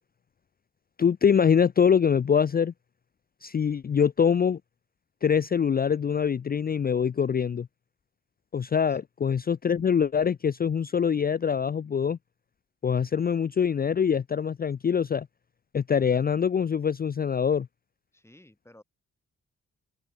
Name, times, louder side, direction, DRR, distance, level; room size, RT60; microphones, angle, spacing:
voice 1, 1.0-2.7 3.4-4.6 5.2-7.7 8.5-12.2 12.8-15.3 15.7-17.7, left 7 dB, 30° left, 0.5 m, -24 dB
voice 2, 18.1-18.8, left 1 dB, 10° left, 7.7 m, -55 dB
open air
cardioid pair, 105°, 30 cm